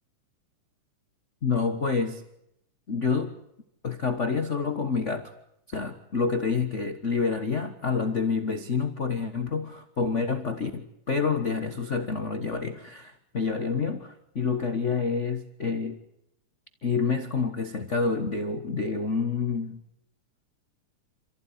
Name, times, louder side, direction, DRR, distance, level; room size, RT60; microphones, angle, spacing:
voice 1, 1.4-2.2 2.9-3.3 3.8-5.3 5.7-16.0 16.8-19.8, left 5 dB, 55° left, 8 dB, 0.8 m, -28 dB
27.5 x 15.5 x 10.0 m, 0.82 s
omnidirectional pair, 3.7 m